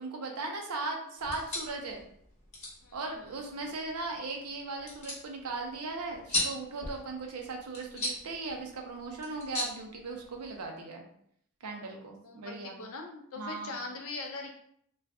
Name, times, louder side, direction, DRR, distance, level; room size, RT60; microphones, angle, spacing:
voice 1, 0.0-2.0 2.9-11.0 11.6-12.8 13.4-13.8, right 3 dB, 80° right, 2 dB, 0.6 m, -38 dB
sound 1, 1.2-10.6, left 1 dB, 30° left, 0.9 m, -39 dB
voice 2, 12.2-14.5, left 3 dB, 70° left, 2 dB, 0.6 m, -41 dB
2.5 x 2.2 x 3.4 m, 0.67 s
head